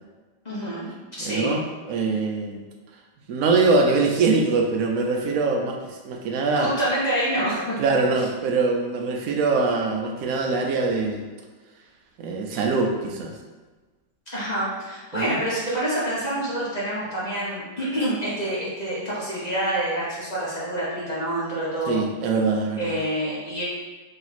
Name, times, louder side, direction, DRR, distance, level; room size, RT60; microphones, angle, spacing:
voice 1, 0.4-0.9 1.2-1.5 6.5-7.8 8.2-8.3 14.3-22.0 22.8-23.6, right 1 dB, 30° left, -8 dB, 0.9 m, -27 dB
voice 2, 1.2-2.6 3.3-6.7 7.8-11.2 12.2-13.4 15.1-15.4 21.9-23.0, right 3 dB, 80° right, 1 dB, 0.7 m, -23 dB
3.3 x 2.9 x 4.0 m, 1.3 s
omnidirectional pair, 2.0 m